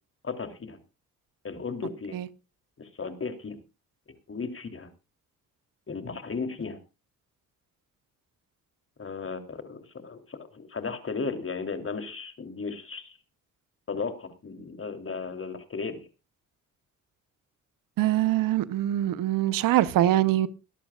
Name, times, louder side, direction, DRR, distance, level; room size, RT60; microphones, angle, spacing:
voice 1, 0.2-0.8 1.4-2.2 2.8-3.6 4.3-4.9 5.9-6.8 9.0-13.2 13.9-16.0, left 4 dB, 40° left, 3.4 m, -35 dB
voice 2, 18.0-20.5, right 13 dB, 90° right, 0.9 m, -23 dB
22.0 x 11.5 x 2.4 m
cardioid pair, 70°, 32 cm